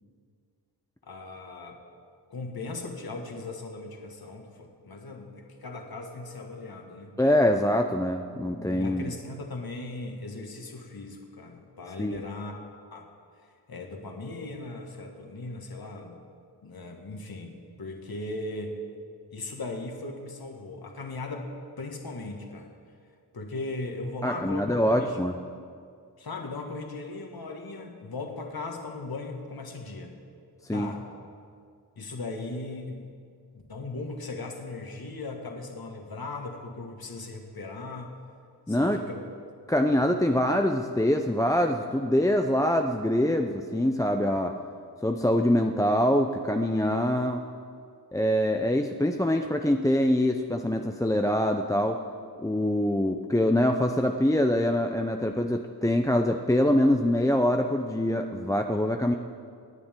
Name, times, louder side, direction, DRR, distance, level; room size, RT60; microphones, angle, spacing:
voice 1, 1.1-1.8 2.3-7.2 8.3-13.1 13.7-16.2 16.6-17.5 17.8-18.8 19.3-21.5 21.8-22.7 23.3-25.2 26.2-30.1 30.7-31.1 32.0-33.1 33.5-38.1 38.7-39.2, left 2 dB, 60° left, 2 dB, 1.8 m, -38 dB
voice 2, 7.2-9.1 12.0-12.2 24.2-25.4 30.7-30.9 38.7-39.0 39.7-44.5 45.0-47.4 48.1-52.0 52.4-59.1, left 1 dB, 10° left, 4 dB, 0.5 m, -24 dB
26.5 x 9.9 x 3.7 m, 2.2 s
wide cardioid pair, 115°, 41 cm